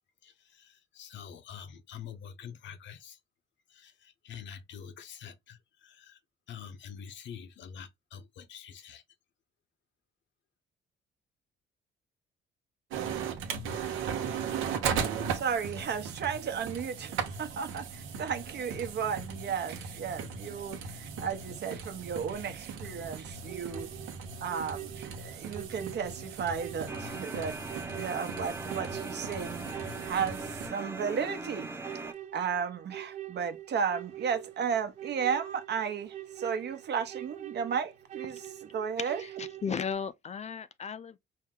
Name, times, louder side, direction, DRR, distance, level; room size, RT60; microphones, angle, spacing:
voice 1, 0.2-3.2 3.7-6.2 6.5-9.0, left 8 dB, 70° left, 0.8 m, -46 dB
sound 1, 12.9-30.7, right 6 dB, 90° right, 0.9 m, -38 dB
voice 2, 15.3-23.9 24.4-31.7 32.0-38.4 38.7-39.2, right 7 dB, 60° right, 0.8 m, -34 dB
sound 2, 23.5-39.9, right 13 dB, 40° right, 0.4 m, -45 dB
sound 3, 26.9-32.1, right 2 dB, 15° right, 0.7 m, -40 dB
voice 3, 39.0-41.2, left 6 dB, 35° left, 0.4 m, -36 dB
4.6 x 2.1 x 3.7 m
cardioid pair, 90°, 20 cm